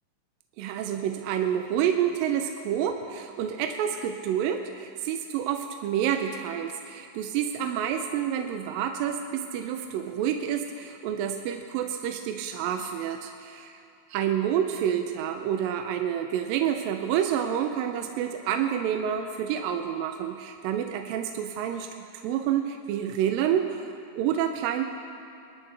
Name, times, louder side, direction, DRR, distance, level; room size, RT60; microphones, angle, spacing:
voice 1, 0.6-13.3 14.1-21.9 22.2-23.9 24.2-24.8, right 9 dB, 80° right, 5 dB, 2.2 m, -28 dB
21.0 x 12.5 x 3.3 m, 2.6 s
omnidirectional pair, 4.4 m